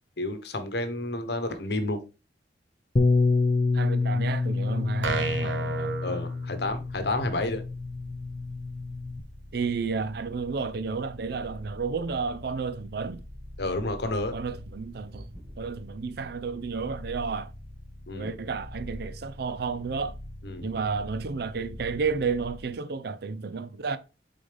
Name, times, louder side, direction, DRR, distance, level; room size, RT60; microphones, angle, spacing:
voice 1, 0.2-2.0 6.0-7.6 13.6-14.3 18.1-18.3 20.4-20.7, left 2 dB, 65° left, 1.0 m, -30 dB
Bass guitar, 3.0-9.2, left 3 dB, 35° left, 0.5 m, -27 dB
voice 2, 3.7-6.0 9.5-13.2 14.3-17.5 18.1-20.2 20.6-24.0, right 5 dB, 60° right, 0.5 m, -32 dB
sound 1, 5.0-7.0, right 4 dB, 85° right, 1.1 m, -32 dB
sound 2, 6.6-22.7, left 1 dB, 35° right, 1.7 m, -45 dB
7.0 x 4.0 x 3.3 m
head